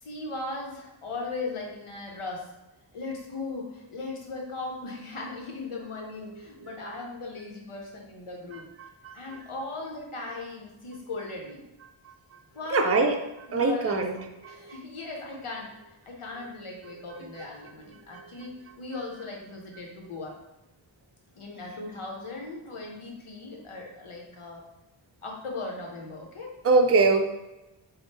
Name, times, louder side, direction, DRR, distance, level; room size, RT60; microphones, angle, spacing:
voice 1, 0.0-2.5 2.9-8.6 9.1-11.6 12.5-13.0 13.5-14.0 14.4-20.3 21.4-24.6 25.2-26.5, left 3 dB, 85° left, 0 dB, 0.9 m, -38 dB
voice 2, 8.8-9.1 12.7-13.1 13.5-14.2 14.4-14.5 17.2-17.3 26.6-27.2, right 3 dB, 30° right, 4 dB, 0.4 m, -23 dB
3.5 x 2.1 x 4.0 m, 0.98 s
wide cardioid pair, 50°, 49 cm